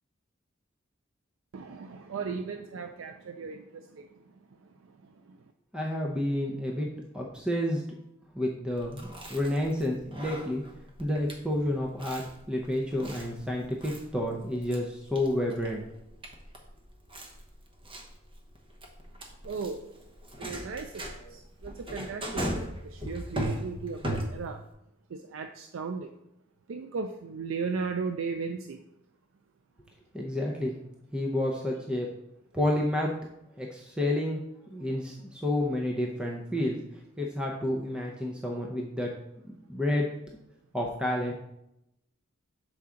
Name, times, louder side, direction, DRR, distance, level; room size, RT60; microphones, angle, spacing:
voice 1, 1.5-4.0 19.4-19.8 20.4-21.0 21.3-24.6 25.1-26.1 26.7-28.8, right 5 dB, 85° right, 7 dB, 0.4 m, -36 dB
voice 2, 5.7-6.9 7.1-7.8 8.3-10.6 11.0-15.8 30.1-30.7 31.1-32.1 32.5-33.1 33.6-34.4 34.7-36.8 37.2-39.1 39.7-40.1 40.7-41.3, left 1 dB, 5° right, -1 dB, 0.6 m, -30 dB
Chewing mastication, 8.8-24.7, equal, 25° right, 0.9 m, -39 dB
7.0 x 4.7 x 3.7 m, 0.84 s
head